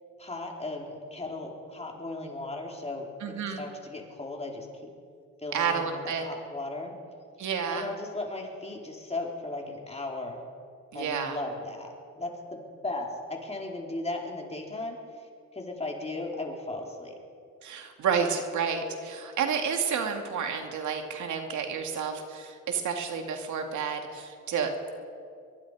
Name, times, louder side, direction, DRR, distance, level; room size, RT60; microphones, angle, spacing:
voice 1, 0.2-4.9 5.4-6.9 7.7-10.4 10.9-15.0 15.5-17.1, left 2 dB, 20° left, 0 dB, 4.2 m, -36 dB
voice 2, 3.2-3.6 5.5-6.2 7.4-7.9 10.9-11.4 17.6-24.9, right 6 dB, 70° right, 4 dB, 2.6 m, -30 dB
24.0 x 22.5 x 5.1 m, 2.3 s
cardioid pair, 90°, 30 cm